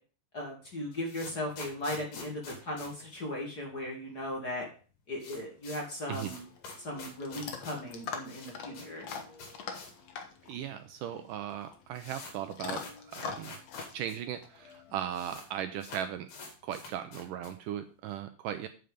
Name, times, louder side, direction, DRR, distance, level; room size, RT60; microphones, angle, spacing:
voice 1, 0.3-4.7 5.1-6.4 6.8-9.1, left 1 dB, 30° left, -1 dB, 2.2 m, -37 dB
sound 1, 0.7-3.9 4.2-4.3 4.5-4.6 4.9-10.1 10.4-10.5 11.2-11.3 11.5-14.2 14.4-14.5 14.7-15.5 15.8-17.7, left 4 dB, 75° left, 4.3 m, -47 dB
Chewing mastication / Dog, 6.2-15.3, left 6 dB, 60° left, 2.1 m, -44 dB
voice 2, 10.5-13.6 13.9-16.3 16.6-18.7, right 10 dB, 80° right, 9 dB, 2.0 m, -37 dB
8.3 x 7.7 x 5.2 m, 0.37 s
omnidirectional pair, 4.2 m